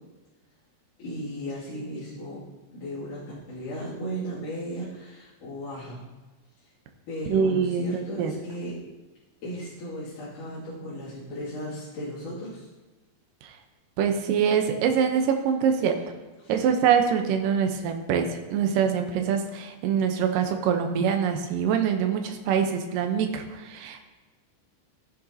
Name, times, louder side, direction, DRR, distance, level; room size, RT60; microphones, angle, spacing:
voice 1, 1.0-2.4 2.7-3.2 3.5-6.0 7.1-8.8 9.4-12.7 15.8-15.9 16.4-16.7, equal, 55° left, -11 dB, 3.6 m, -36 dB
voice 2, 7.3-7.9 8.2-8.3 14.0-16.0 16.5-24.0, right 7 dB, 75° right, 5 dB, 2.0 m, -24 dB
14.5 x 9.6 x 2.8 m, 1.3 s
omnidirectional pair, 4.7 m